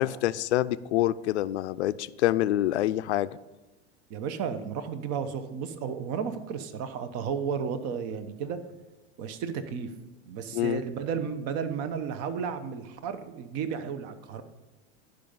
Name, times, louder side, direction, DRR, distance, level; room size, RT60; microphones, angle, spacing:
voice 1, 0.0-3.3 10.5-10.8, left 14 dB, 80° left, 16 dB, 0.5 m, -26 dB
voice 2, 4.1-8.6 9.2-9.9 10.3-14.4, right 6 dB, 50° right, 11 dB, 1.0 m, -33 dB
11.5 x 5.3 x 5.4 m, 1.2 s
hypercardioid pair, 110°, 33 cm